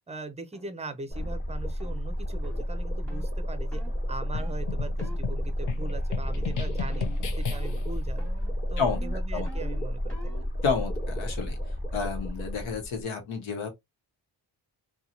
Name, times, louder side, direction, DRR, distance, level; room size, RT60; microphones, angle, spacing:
voice 1, 0.1-3.8 4.1-7.1 7.4-8.3 8.7-10.2, right 3 dB, 15° right, 0.6 m, -40 dB
sound 1, 0.5-0.7 1.2-1.4 1.8-2.0 2.4-2.6 3.1-3.3 3.7-4.0 4.4-4.6 5.0-5.2 5.6-6.0 6.3-6.6 6.9-7.3 7.5-7.9 8.2-10.5, right 1 dB, 5° left, 1.3 m, -48 dB
sound 2, 1.1-13.0, equal, 20° left, 1.3 m, -31 dB
sound 3, 4.3-8.0, left 8 dB, 40° left, 0.7 m, -36 dB
voice 2, 10.6-11.6 11.9-13.7, left 5 dB, 80° left, 1.1 m, -30 dB
2.7 x 2.4 x 2.5 m
supercardioid pair, 55°, 47 cm